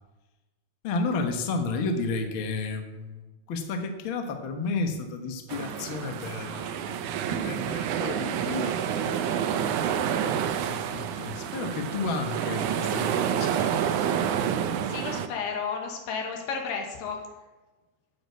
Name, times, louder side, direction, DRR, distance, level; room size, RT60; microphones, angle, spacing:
voice 1, 0.8-9.8 10.7-14.1, left 3 dB, 70° left, 5 dB, 1.1 m, -32 dB
sound 1, 5.5-15.3, right 8 dB, 80° right, 1.7 m, -28 dB
voice 2, 14.9-17.2, left 5 dB, 90° left, 2 dB, 3.9 m, -32 dB
9.0 x 8.3 x 8.3 m, 1.1 s
omnidirectional pair, 4.5 m